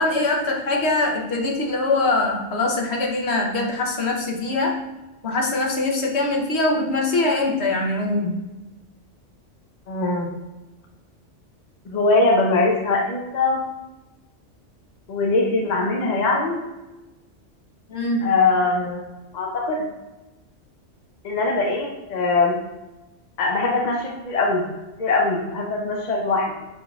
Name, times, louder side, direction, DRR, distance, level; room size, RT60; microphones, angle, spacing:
voice 1, 0.0-4.8 5.2-8.4 17.9-18.3, left 2 dB, 60° left, 0 dB, 1.1 m, -23 dB
voice 2, 9.9-10.3 11.9-13.6 15.1-16.6 18.2-19.0 19.3-19.9 21.2-22.6 23.4-24.7 25.0-26.5, left 3 dB, 45° left, 0 dB, 0.7 m, -21 dB
6.1 x 3.7 x 2.3 m, 1.0 s
omnidirectional pair, 1.3 m